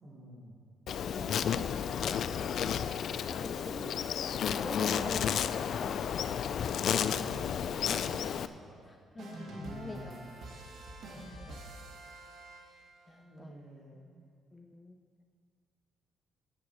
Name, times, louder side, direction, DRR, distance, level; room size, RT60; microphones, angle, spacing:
voice 1, 0.0-0.6 1.4-2.5 3.5-3.9 6.6-8.8 9.5-10.3 11.1-11.3 13.2-14.1, equal, 50° right, -10 dB, 3.2 m, -50 dB
Insect, 0.9-8.5, left 8 dB, 65° left, 0.4 m, -32 dB
voice 2, 1.0-1.7 3.3-6.2 8.9-10.2 11.0-11.6 13.1-13.5 14.5-15.0, left 2 dB, 20° left, 4 dB, 0.7 m, -45 dB
sound 1, 9.2-13.1, right 2 dB, 65° right, 1.7 m, -48 dB
9.1 x 7.7 x 7.4 m, 2.1 s
cardioid pair, 90°, 0 cm